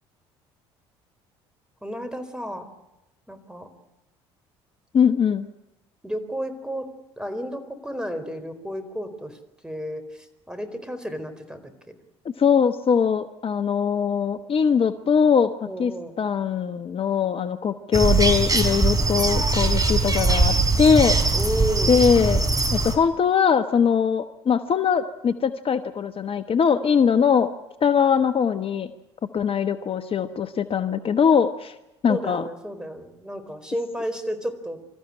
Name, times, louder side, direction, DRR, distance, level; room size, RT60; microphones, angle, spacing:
voice 1, 1.8-2.7 3.3-3.7 6.0-6.9 7.2-9.4 9.6-11.7 15.7-16.1 21.3-22.0 32.1-34.8, equal, 5° right, 8 dB, 4.4 m, -32 dB
voice 2, 4.9-5.5 12.4-15.5 15.8-15.9 16.2-21.2 21.9-22.4 22.7-27.5 27.8-28.9 29.3-31.7 32.0-32.4, left 7 dB, 40° left, 9 dB, 1.2 m, -21 dB
sound 1, 17.9-22.9, right 3 dB, 25° right, 5.0 m, -21 dB
27.0 x 14.0 x 9.9 m, 0.94 s
hypercardioid pair, 60°, 14 cm